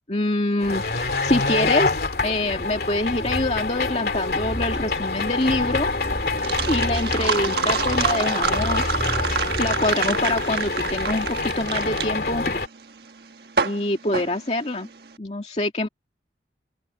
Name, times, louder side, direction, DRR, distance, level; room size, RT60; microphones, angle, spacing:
voice 1, 0.0-2.0 2.2-5.9 6.7-9.0 9.6-12.6 13.6-14.9 15.2-15.9, left 1 dB, 35° left, 2.2 m, -25 dB
sound 1, 0.6-12.7, left 3 dB, 55° left, 2.8 m, -26 dB
sound 2, 3.2-10.1, equal, ahead, 2.4 m, -33 dB
sound 3, 5.2-15.1, right 5 dB, 65° right, 1.4 m, -28 dB
open air
head